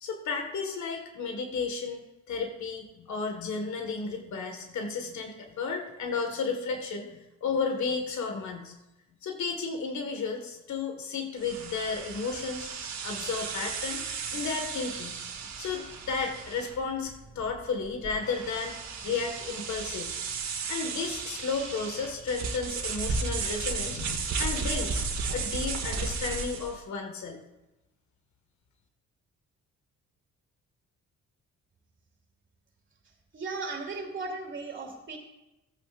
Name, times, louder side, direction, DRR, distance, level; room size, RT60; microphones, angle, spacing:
voice 1, 0.0-2.0 2.3-8.7 9.2-12.7 13.0-14.0 14.3-15.2 15.6-20.1 20.7-25.0 25.3-27.4, left 4 dB, 70° left, 4 dB, 1.7 m, -33 dB
sound 1, 11.4-26.8, right 4 dB, 60° right, 2.0 m, -34 dB
voice 2, 33.3-35.2, right 3 dB, 40° right, 2 dB, 3.0 m, -36 dB
16.0 x 8.9 x 2.5 m, 0.96 s
cardioid pair, 90°, 30 cm